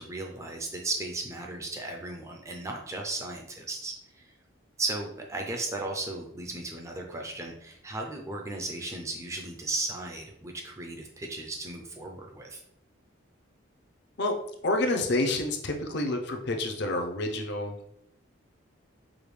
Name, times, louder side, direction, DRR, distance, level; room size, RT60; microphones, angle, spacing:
voice 1, 0.0-4.3 4.8-12.6, right 2 dB, 15° right, 2 dB, 0.4 m, -35 dB
voice 2, 14.6-17.9, left 2 dB, 55° left, 4 dB, 0.5 m, -28 dB
4.9 x 2.2 x 3.2 m, 0.73 s
head